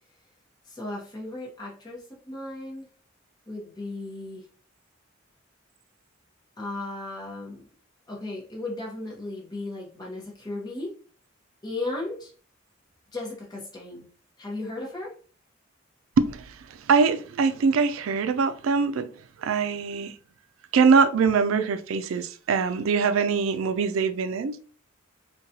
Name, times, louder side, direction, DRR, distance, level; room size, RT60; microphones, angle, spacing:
voice 1, 0.6-2.9 3.5-4.5 6.6-7.7 8.1-10.9 11.6-12.3 13.1-14.1 14.4-15.1, left 2 dB, 20° left, 0.8 m, -35 dB
voice 2, 16.9-19.1 19.4-20.1 20.7-24.6, right 5 dB, 90° right, 0.4 m, -23 dB
3.9 x 2.2 x 2.7 m
head